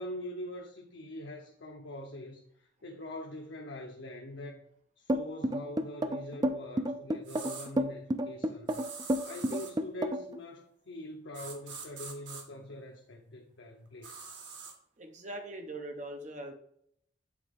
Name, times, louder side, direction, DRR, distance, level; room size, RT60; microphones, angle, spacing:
voice 1, 0.0-2.4 2.8-4.6 5.0-8.8 9.2-14.2, left 1 dB, 80° left, 0.8 m, -43 dB
sound 1, 5.1-10.4, equal, 20° right, 0.4 m, -30 dB
sound 2, 7.3-7.7 8.7-9.8 11.3-12.4 14.0-14.7, right 5 dB, 70° right, 1.3 m, -44 dB
voice 2, 15.0-16.5, right 1 dB, 40° right, 1.0 m, -41 dB
8.2 x 3.8 x 3.5 m
head